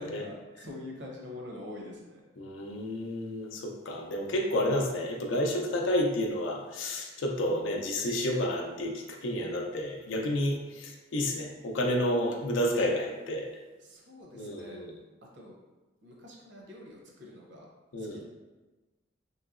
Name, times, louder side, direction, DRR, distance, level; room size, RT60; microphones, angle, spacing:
voice 1, 0.0-2.2 13.8-14.9 15.2-15.5 16.0-17.7 18.0-18.2, left 1 dB, 65° right, -2 dB, 0.7 m, -45 dB
voice 2, 2.4-13.5 14.4-14.9 17.9-18.2, left 1 dB, 85° left, 2 dB, 0.5 m, -30 dB
3.1 x 2.8 x 2.4 m, 1.2 s
head